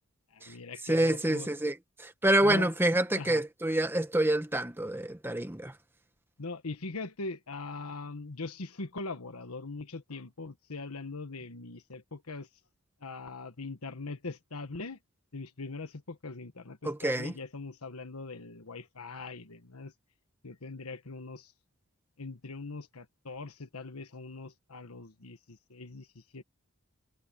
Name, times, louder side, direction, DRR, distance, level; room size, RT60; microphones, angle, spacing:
voice 1, 0.3-1.5 2.4-2.7 3.2-3.4 6.4-12.5 13.0-15.0 15.3-19.9 20.4-21.5 22.2-26.4, left 3 dB, 90° left, 1.4 m, -41 dB
voice 2, 0.9-5.7 16.8-17.3, right 1 dB, 10° right, 1.2 m, -27 dB
head